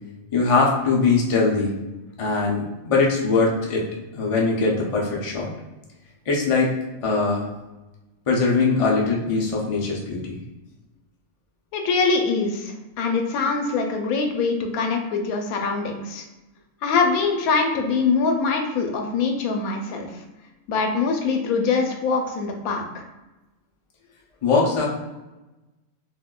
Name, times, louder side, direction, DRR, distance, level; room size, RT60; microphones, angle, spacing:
voice 1, 0.3-1.8 2.2-5.5 6.3-6.7 7.0-7.5 8.3-10.4 24.4-24.9, left 4 dB, 60° left, -2 dB, 0.3 m, -21 dB
voice 2, 11.7-16.2 16.8-20.2 20.7-23.0, left 4 dB, 85° left, 3 dB, 1.0 m, -23 dB
3.6 x 2.6 x 2.2 m, 1.1 s
omnidirectional pair, 1.5 m